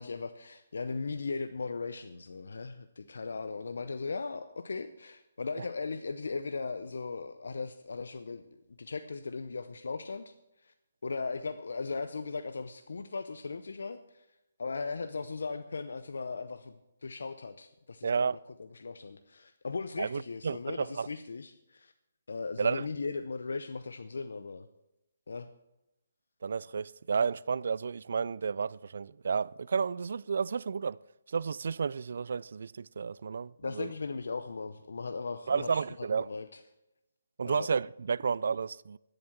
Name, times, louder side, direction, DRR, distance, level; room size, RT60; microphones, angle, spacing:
voice 1, 0.0-10.7 11.0-14.3 14.6-21.9 22.3-24.7 25.3-25.5 33.6-36.6 37.4-37.7, left 4 dB, 75° left, 0.7 m, -38 dB
voice 2, 18.0-18.4 20.0-21.1 22.6-22.8 26.4-31.0 31.3-33.9 35.5-36.3 37.4-39.0, right 5 dB, 65° right, 0.3 m, -31 dB
12.0 x 7.9 x 7.2 m
hypercardioid pair, 150°, 0 cm